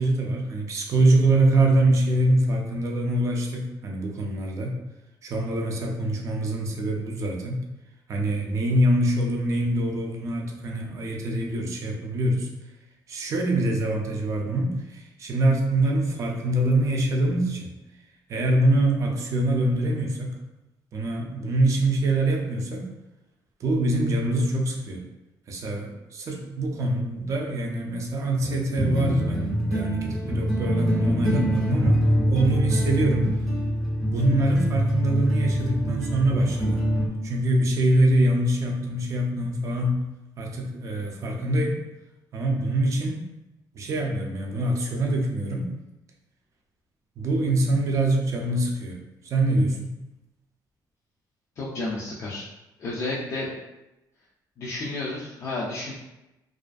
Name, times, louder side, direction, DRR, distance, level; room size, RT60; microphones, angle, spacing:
voice 1, 0.0-4.8 5.2-7.6 8.1-12.5 13.1-17.7 18.3-20.4 20.9-22.9 23.6-25.0 25.5-32.0 32.3-33.3 34.1-36.8 37.2-40.0 40.4-41.8 42.3-43.2 43.7-45.7 47.2-50.0, right 1 dB, 40° right, 0 dB, 0.4 m, -24 dB
sound 1, 28.4-37.1, equal, ahead, 0.7 m, -25 dB
voice 2, 51.6-52.5 52.8-53.5 54.6-55.9, left 2 dB, 40° left, -6 dB, 0.4 m, -31 dB
2.4 x 2.4 x 2.3 m, 0.97 s
cardioid pair, 170°, 8 cm